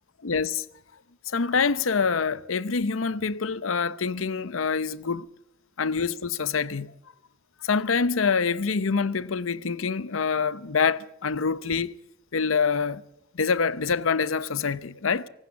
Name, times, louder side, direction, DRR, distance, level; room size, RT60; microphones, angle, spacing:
voice 1, 0.2-0.6 1.3-5.3 5.8-6.9 7.6-11.9 12.3-13.0 13.4-15.3, left 5 dB, 80° left, 0.7 m, -26 dB
25.5 x 18.0 x 7.2 m
head